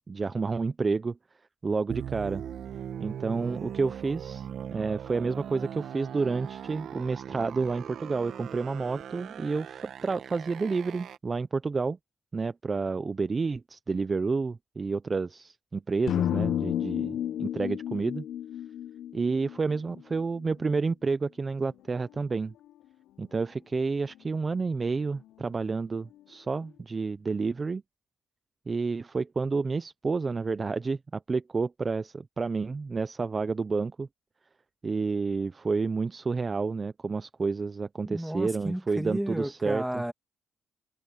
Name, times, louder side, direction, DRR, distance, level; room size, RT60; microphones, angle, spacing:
voice 1, 0.1-1.2 1.6-2.4 3.0-12.0 12.3-18.2 19.1-22.5 23.2-27.8 28.7-34.1 34.8-40.0, right 4 dB, 30° right, 0.7 m, -30 dB
sound 1, 1.9-11.2, right 9 dB, 70° right, 1.3 m, -40 dB
sound 2, 16.1-20.2, left 10 dB, 70° left, 1.1 m, -31 dB
sound 3, 21.7-26.8, left 13 dB, 90° left, 6.0 m, -58 dB
voice 2, 38.1-40.1, right 1 dB, 5° right, 2.5 m, -32 dB
cardioid pair, 90°, 0 cm